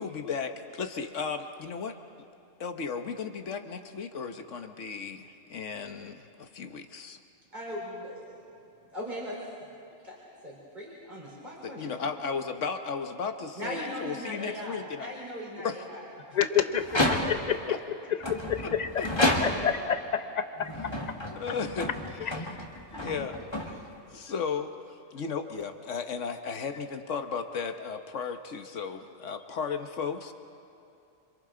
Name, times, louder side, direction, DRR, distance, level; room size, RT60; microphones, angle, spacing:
voice 1, 0.0-1.9 2.6-7.2 11.6-15.1 15.6-15.8 17.3-17.8 18.6-19.1 21.3-22.6 22.9-30.3, left 5 dB, 75° left, 7 dB, 1.4 m, -35 dB
voice 2, 7.5-8.3 8.9-9.4 10.0-10.2 10.4-12.0 13.6-16.7 17.2-17.3, equal, 35° right, -4 dB, 4.1 m, -39 dB
sound 1, 16.8-17.6 18.2-19.9 20.6-24.1, left 1 dB, 20° left, 1.6 m, -30 dB
voice 3, 18.8-20.7, left 8 dB, 40° left, 8 dB, 0.9 m, -28 dB
27.5 x 25.5 x 3.8 m, 2.7 s
omnidirectional pair, 1.3 m